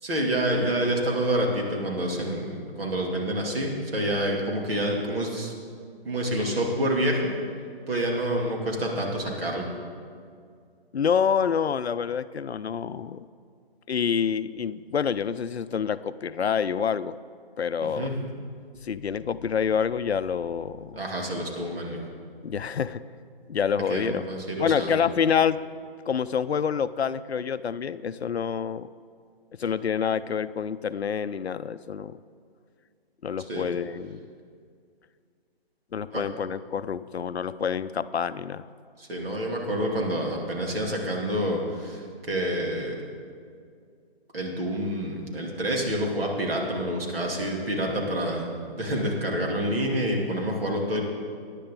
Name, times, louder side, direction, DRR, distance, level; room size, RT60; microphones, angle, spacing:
voice 1, 0.0-5.5 6.0-7.3 7.9-9.7 18.0-18.1 20.9-22.0 23.9-25.0 33.5-33.7 36.1-36.2 39.0-43.0 44.3-48.5 48.7-51.0, right 1 dB, 65° right, -1 dB, 2.5 m, -28 dB
voice 2, 10.9-13.3 13.9-17.2 17.6-18.1 18.8-21.0 22.4-23.0 23.5-24.3 24.6-25.6 26.1-28.9 29.6-32.2 33.2-34.3 35.9-38.7, left 7 dB, 90° left, 15 dB, 0.5 m, -27 dB
15.0 x 9.9 x 3.7 m, 2.2 s
figure-of-eight pair, 140°, 31 cm